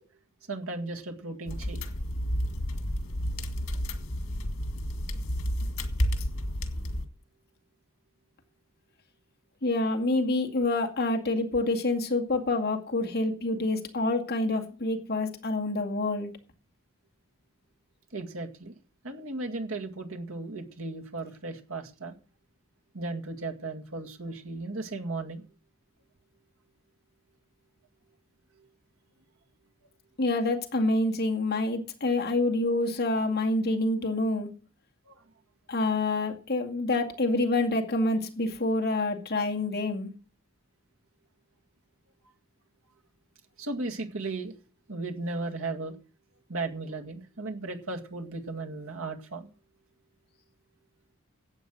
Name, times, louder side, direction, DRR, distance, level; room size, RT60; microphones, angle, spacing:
voice 1, 0.5-1.8 18.1-18.8 19.0-22.1 22.9-25.4 35.1-35.2 43.6-44.5 44.9-46.0 46.5-49.5, right 3 dB, 75° right, 2.0 m, -36 dB
sound 1, 1.5-7.1, equal, 90° left, 2.0 m, -31 dB
voice 2, 9.6-16.4 30.2-34.5 35.7-40.1, left 2 dB, 45° left, 2.3 m, -27 dB
12.0 x 8.5 x 6.3 m
head